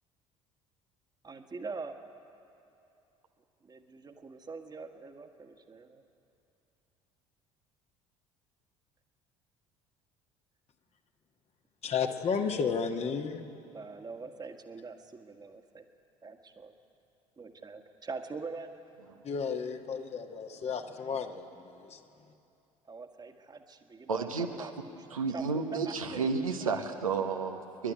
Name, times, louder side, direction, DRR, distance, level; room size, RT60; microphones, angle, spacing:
voice 1, 1.2-2.0 3.6-6.0 13.7-15.8 16.2-16.7 17.4-18.8 20.5-21.2 22.9-26.3 26.6-26.9, right 4 dB, 25° right, 6 dB, 1.6 m, -44 dB
voice 2, 11.8-13.5 19.2-21.5 21.8-22.0, left 6 dB, 35° left, 5 dB, 1.5 m, -32 dB
voice 3, 24.1-24.7 25.1-27.9, right 5 dB, 80° right, 4 dB, 1.2 m, -32 dB
27.5 x 11.5 x 9.6 m, 2.8 s
figure-of-eight pair, 60°, 18 cm